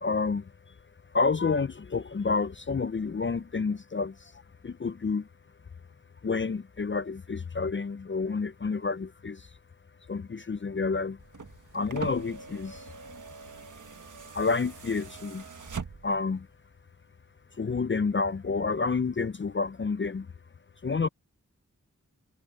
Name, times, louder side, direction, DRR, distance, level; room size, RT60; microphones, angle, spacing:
voice 1, 0.0-0.4 1.1-4.3 4.6-5.3 6.2-9.5 10.1-11.2 11.7-12.8 14.3-15.4 16.0-16.5 17.6-20.3 20.8-21.1, left 4 dB, 35° left, 0.6 m, -29 dB
sound 1, 11.2-16.3 17.5-17.6, right 5 dB, 70° right, 1.6 m, -42 dB
cardioid pair, 45°, 32 cm